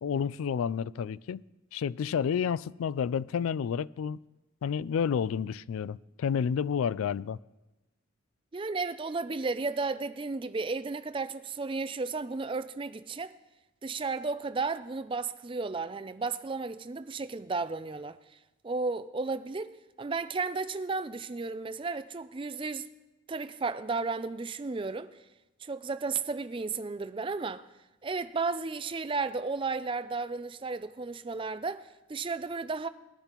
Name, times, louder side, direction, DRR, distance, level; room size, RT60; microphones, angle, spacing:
voice 1, 0.0-1.4 1.7-4.2 4.6-7.4, left 7 dB, 80° left, 0.3 m, -30 dB
voice 2, 8.5-13.3 13.8-18.2 18.6-22.9 23.3-25.1 25.6-27.7 28.0-32.9, right 4 dB, 25° right, 0.4 m, -33 dB
20.0 x 10.5 x 3.0 m
head